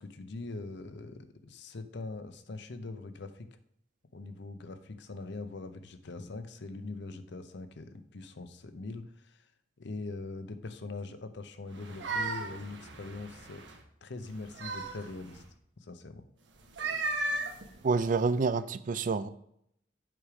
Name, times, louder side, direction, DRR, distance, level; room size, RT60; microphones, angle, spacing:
voice 1, 0.0-3.5 4.1-9.5 9.8-13.6 14.0-15.4 15.8-16.3, left 3 dB, 65° left, 10 dB, 0.7 m, -42 dB
sound 1, 11.7-13.8 14.3-15.5 16.6-18.4, right 2 dB, 70° right, 1.2 m, -36 dB
voice 2, 17.8-19.3, right 4 dB, 45° right, 15 dB, 0.4 m, -28 dB
7.9 x 5.0 x 4.9 m, 0.71 s
head